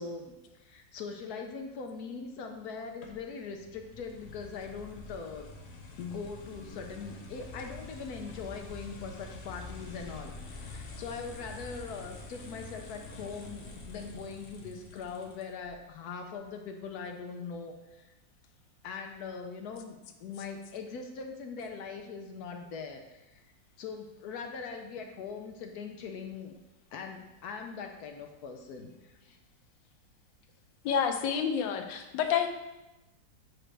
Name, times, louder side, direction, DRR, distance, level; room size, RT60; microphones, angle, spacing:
voice 1, 0.0-5.5 6.0-18.1 18.8-23.5 23.8-26.5 26.9-29.4, left 5 dB, 70° left, 4 dB, 1.0 m, -41 dB
sound 1, 3.0-15.7, left 2 dB, 50° left, 0.9 m, -46 dB
voice 2, 30.8-32.5, left 7 dB, 85° left, 6 dB, 1.3 m, -28 dB
7.7 x 4.9 x 3.3 m, 1.0 s
omnidirectional pair, 2.0 m